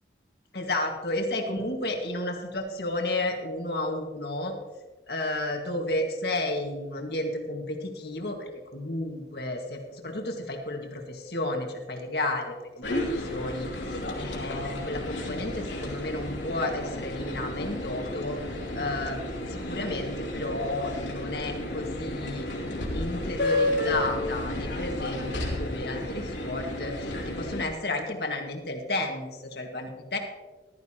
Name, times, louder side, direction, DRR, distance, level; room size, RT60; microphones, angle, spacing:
voice 1, 0.5-4.5 5.1-19.2 19.5-22.5 22.9-30.2, left 2 dB, 55° left, 2 dB, 1.9 m, -32 dB
sound 1, 12.8-27.7, left 1 dB, 85° left, 3.1 m, -32 dB
14.5 x 13.5 x 3.0 m, 1.2 s
head